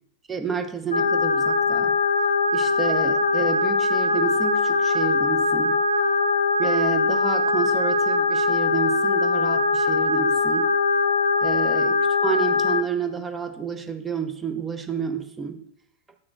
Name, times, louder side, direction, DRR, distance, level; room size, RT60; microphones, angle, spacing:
voice 1, 0.3-1.9 2.5-5.8 6.6-10.7 11.4-15.6, right 7 dB, 15° right, 8 dB, 0.7 m, -30 dB
sound 1, 0.9-12.8, left 3 dB, 80° left, 0.5 m, -21 dB
7.6 x 5.8 x 2.5 m, 0.69 s
figure-of-eight pair, 90°, 0 cm